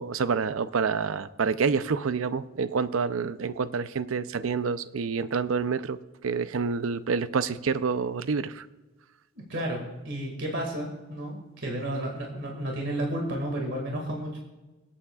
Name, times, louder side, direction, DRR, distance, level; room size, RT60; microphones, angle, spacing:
voice 1, 0.0-8.7, right 5 dB, 80° right, 14 dB, 0.5 m, -28 dB
voice 2, 9.4-14.4, right 1 dB, 65° right, 0 dB, 2.0 m, -32 dB
24.5 x 8.6 x 2.4 m, 1.1 s
head